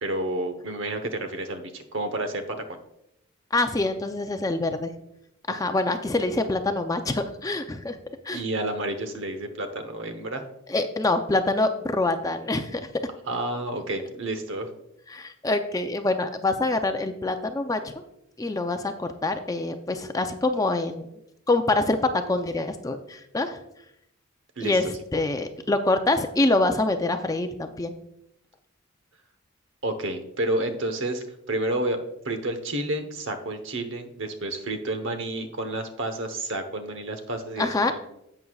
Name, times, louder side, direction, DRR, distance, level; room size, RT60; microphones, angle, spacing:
voice 1, 0.0-2.8 8.3-10.5 13.3-14.7 24.6-24.8 29.8-38.1, right 1 dB, 60° right, 8 dB, 1.0 m, -30 dB
voice 2, 3.5-4.9 5.5-8.0 8.2-8.4 10.7-12.8 15.1-17.9 18.4-21.1 21.5-23.6 24.6-27.9 37.6-37.9, left 2 dB, 15° left, 7 dB, 0.5 m, -25 dB
11.0 x 8.0 x 2.4 m, 0.80 s
head